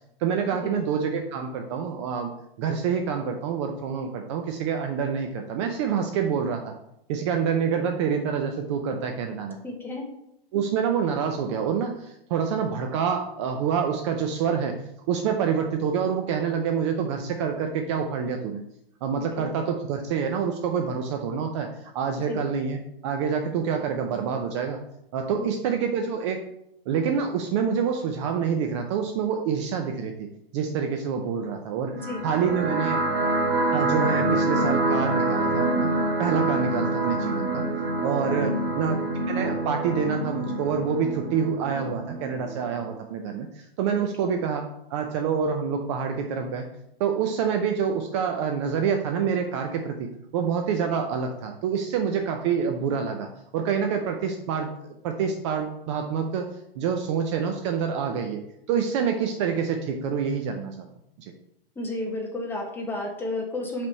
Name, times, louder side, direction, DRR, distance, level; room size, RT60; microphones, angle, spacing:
voice 1, 0.2-2.3 2.6-6.7 7.1-9.6 10.5-14.8 15.1-18.6 19.0-24.8 25.1-26.4 26.9-30.3 30.5-31.9 32.2-33.0 33.7-35.9 36.2-37.6 38.0-39.0 39.2-44.6 44.9-46.7 47.0-53.3 53.5-56.5 56.8-58.4 58.7-60.7, right 6 dB, 30° right, 4 dB, 0.5 m, -27 dB
voice 2, 9.6-10.0 19.4-19.5 22.3-22.4 25.4-25.5 31.9-32.2 38.5-38.6 44.2-44.3 61.8-63.9, left 1 dB, 5° left, 1 dB, 0.8 m, -32 dB
sound 1, 31.9-42.9, right 2 dB, 75° right, 1.2 m, -26 dB
5.4 x 3.4 x 5.3 m, 0.79 s
hypercardioid pair, 140°, 30 cm